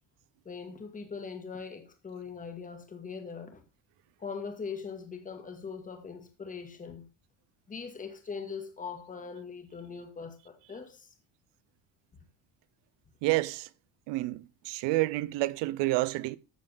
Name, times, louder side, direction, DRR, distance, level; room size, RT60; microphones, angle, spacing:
voice 1, 0.4-3.6 4.2-7.1 7.7-11.1, left 5 dB, 20° left, 1.6 m, -41 dB
voice 2, 13.2-13.7 14.1-16.4, right 19 dB, 80° right, 0.7 m, -29 dB
14.0 x 6.6 x 3.9 m
cardioid pair, 180°, 43 cm